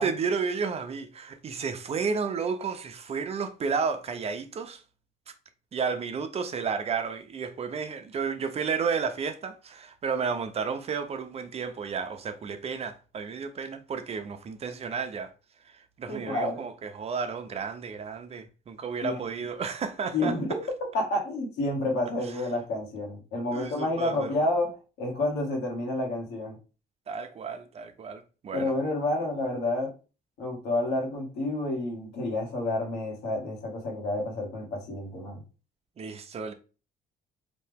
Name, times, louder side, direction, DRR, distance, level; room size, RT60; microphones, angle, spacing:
voice 1, 0.0-4.8 5.7-15.3 15.7-20.3 23.5-24.3 27.1-28.7 36.0-36.5, right 5 dB, 40° right, 0.6 m, -32 dB
voice 2, 16.1-16.6 19.0-19.2 20.1-24.7 25.0-26.6 28.5-29.9 30.4-35.4, left 2 dB, 80° left, 1.8 m, -29 dB
4.2 x 2.8 x 3.5 m
cardioid pair, 110°, 17 cm